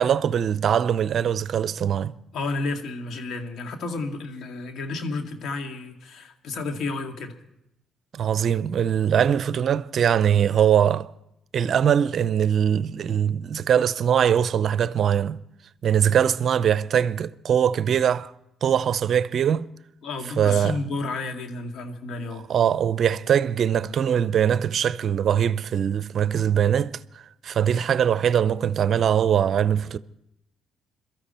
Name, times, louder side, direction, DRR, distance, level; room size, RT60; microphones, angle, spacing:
voice 1, 0.0-2.1 8.1-11.1 11.5-15.4 15.8-18.3 18.6-19.7 20.4-20.7 22.5-27.0 27.4-30.0, right 8 dB, 60° right, 0.5 m, -22 dB
voice 2, 2.3-7.4 20.0-22.4, left 3 dB, 65° left, 2.0 m, -31 dB
22.5 x 13.5 x 4.3 m
supercardioid pair, 65°, 0 cm